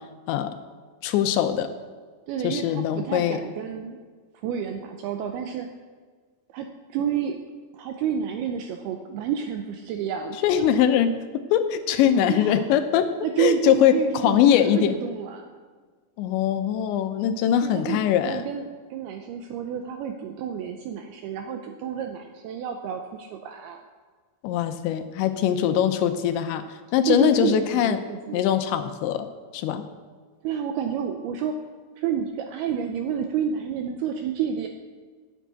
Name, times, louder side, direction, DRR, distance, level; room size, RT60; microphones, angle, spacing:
voice 1, 1.0-1.7 2.4-3.4 10.4-11.1 11.5-13.1 13.4-15.0 16.2-18.4 24.4-26.6 26.9-28.0 28.3-29.3 29.5-29.8, left 10 dB, 85° left, 9 dB, 3.0 m, -22 dB
voice 2, 2.3-4.0 4.3-5.7 6.5-7.4 7.7-10.4 12.3-12.6 13.2-15.5 17.6-23.8 27.1-28.5 30.4-31.6 32.0-34.7, right 8 dB, 90° right, 5 dB, 2.3 m, -29 dB
10.0 x 8.1 x 8.2 m, 1.5 s
omnidirectional pair, 5.2 m